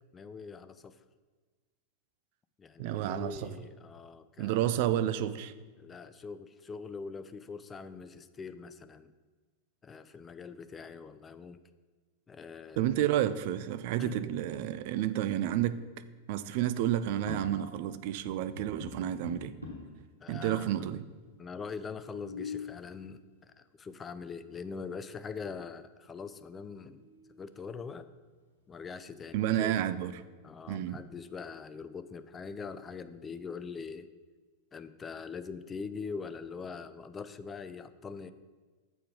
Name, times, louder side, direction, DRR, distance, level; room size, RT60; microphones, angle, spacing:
voice 1, 0.1-1.0 2.6-4.8 5.8-9.1 9.8-11.6 12.3-12.9 14.0-14.2 20.2-20.9 21.4-27.0 27.4-28.1 28.7-29.7 30.4-34.1 34.7-38.3, left 5 dB, 20° left, 12 dB, 0.4 m, -43 dB
voice 2, 2.8-3.5 4.4-5.5 12.8-15.8 16.3-19.6 20.3-21.1 29.3-30.2 30.7-31.0, right 12 dB, 50° right, 13 dB, 0.4 m, -30 dB
sound 1, 17.0-17.9 18.2-20.0 20.8-20.9 21.1-21.2 21.9-22.8 24.5-24.6 25.1-25.6 26.0-26.1 26.6-27.5, left 4 dB, 85° left, 1.3 m, -44 dB
7.5 x 4.4 x 5.0 m, 1.4 s
figure-of-eight pair, 90°, 0 cm